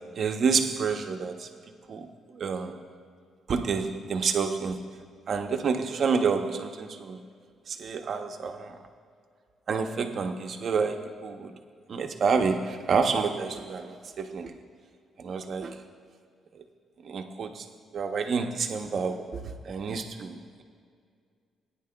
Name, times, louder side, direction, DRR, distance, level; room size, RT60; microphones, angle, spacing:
voice 1, 0.2-1.5 1.9-2.8 3.5-4.8 5.3-7.2 7.7-8.8 9.7-11.6 11.9-14.6 15.2-15.8 16.5-16.6 17.0-17.7 17.9-20.6, right 5 dB, 50° right, 5 dB, 0.8 m, -29 dB
18.0 x 9.8 x 2.3 m, 2.2 s
cardioid pair, 120°, 0 cm